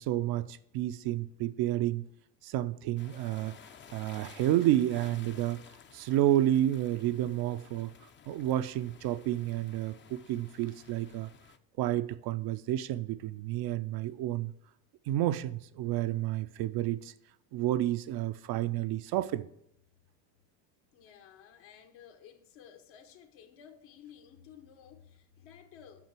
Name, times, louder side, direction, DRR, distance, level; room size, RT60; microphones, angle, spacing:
voice 1, 0.0-2.0 2.4-3.6 3.9-5.6 5.9-7.9 8.3-11.3 11.8-14.5 15.1-17.1 17.5-19.4, right 13 dB, 50° right, 0.5 m, -30 dB
sound 1, 3.0-11.6, left 7 dB, 25° left, 0.5 m, -54 dB
voice 2, 20.9-26.1, left 8 dB, 65° left, 1.3 m, -54 dB
6.6 x 5.8 x 5.9 m
hypercardioid pair, 75°, 49 cm